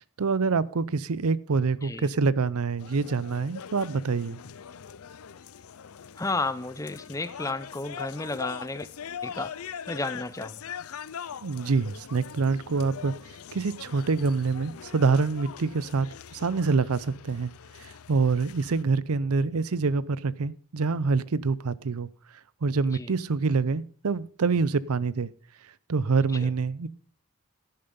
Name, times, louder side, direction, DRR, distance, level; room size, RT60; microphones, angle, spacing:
voice 1, 0.0-4.4 11.4-13.1 13.5-17.5 17.8-22.1 22.6-25.3 25.9-26.9, right 4 dB, 90° right, 0.6 m, -26 dB
sound 1, 2.8-18.8, left 7 dB, 85° left, 0.5 m, -42 dB
voice 2, 6.2-8.9 9.2-9.5 9.9-10.6 22.9-23.1 26.4-26.5, left 3 dB, 15° left, 0.6 m, -32 dB
11.0 x 10.5 x 5.4 m
head